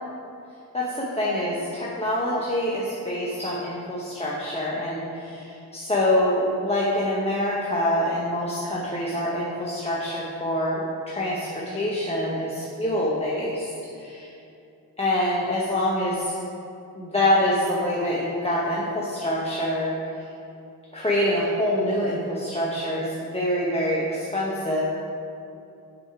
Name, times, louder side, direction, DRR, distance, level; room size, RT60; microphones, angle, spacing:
voice 1, 0.7-13.7 13.9-14.3 15.0-16.3 16.9-19.9 20.9-24.8, left 1 dB, 15° left, -6 dB, 0.8 m, -25 dB
6.1 x 4.8 x 4.7 m, 2.7 s
cardioid pair, 85°, 40 cm